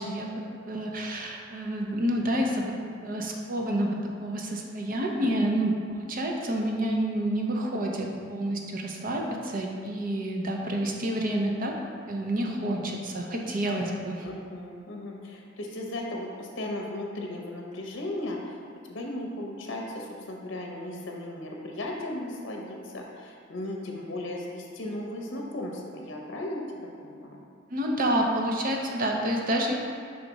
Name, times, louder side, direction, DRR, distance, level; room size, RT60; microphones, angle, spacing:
voice 1, 0.0-2.7 3.0-11.8 12.1-14.3 27.7-29.7, right 1 dB, 45° right, 0 dB, 0.7 m, -29 dB
voice 2, 14.2-18.6 18.8-27.4, left 1 dB, 65° left, 0 dB, 0.7 m, -36 dB
5.0 x 4.7 x 4.0 m, 2.3 s
head